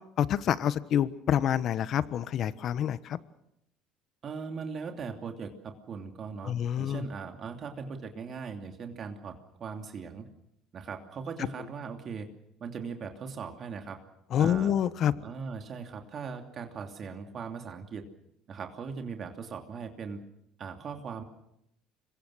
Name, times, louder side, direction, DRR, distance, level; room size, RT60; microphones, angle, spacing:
voice 1, 0.2-3.2 6.4-7.0 14.3-15.1, left 9 dB, 55° left, 15 dB, 1.2 m, -27 dB
voice 2, 4.2-10.3 10.7-12.3 12.6-14.0 14.4-14.7 15.1-18.1 18.5-20.2 20.6-21.2, right 5 dB, 45° right, 4 dB, 2.9 m, -39 dB
26.0 x 22.5 x 6.4 m, 0.80 s
supercardioid pair, 85°, 0 cm